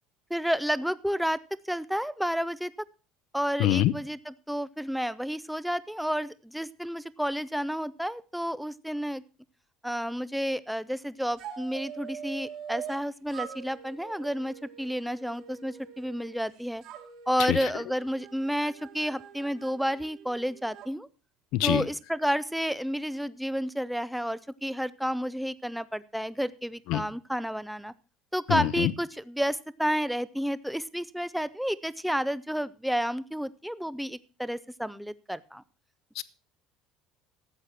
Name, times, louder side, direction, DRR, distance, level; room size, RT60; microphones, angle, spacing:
voice 1, 0.3-2.7 3.3-9.2 9.8-16.8 17.3-21.1 21.6-27.9 28.3-35.6, equal, ahead, 17 dB, 0.5 m, -31 dB
voice 2, 3.6-3.9 17.5-17.6 21.5-21.8 26.9-27.0 28.5-28.9 36.2-36.3, left 14 dB, 65° left, 17 dB, 0.7 m, -24 dB
sound 1, 11.4-13.0 13.3-16.4 16.8-20.9, right 8 dB, 50° right, 3.2 m, -44 dB
13.5 x 8.2 x 5.9 m, 0.34 s
cardioid pair, 155°, 0 cm